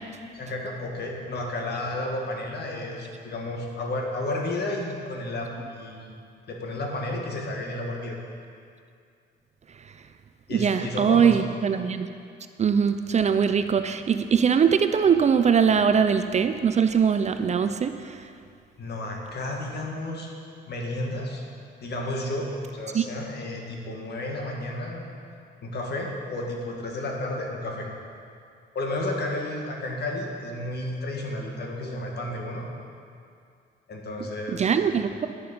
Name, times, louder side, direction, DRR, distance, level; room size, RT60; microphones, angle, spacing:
voice 1, 0.3-6.2 6.5-8.2 10.5-11.4 18.8-20.3 20.7-21.5 21.8-25.0 25.6-27.9 28.7-32.7 33.9-34.7 35.0-35.1, left 1 dB, 55° left, 0 dB, 1.6 m, -32 dB
voice 2, 10.5-12.1 12.6-18.2 22.9-23.0 34.5-35.3, right 7 dB, 35° right, 9 dB, 0.4 m, -21 dB
9.5 x 6.7 x 5.2 m, 2.4 s
cardioid pair, 90°, 20 cm